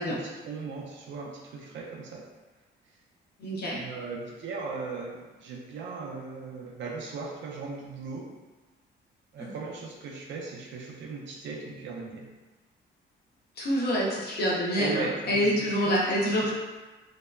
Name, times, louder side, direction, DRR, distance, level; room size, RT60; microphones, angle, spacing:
voice 1, 0.0-2.3 3.7-8.3 9.3-12.3 14.8-16.1 16.4-16.5, right 4 dB, 70° right, -2 dB, 0.5 m, -38 dB
voice 2, 3.4-3.8 9.4-9.5 13.6-16.5, equal, 55° left, -4 dB, 0.8 m, -26 dB
2.7 x 2.1 x 2.2 m, 1.2 s
cardioid pair, 90°, 20 cm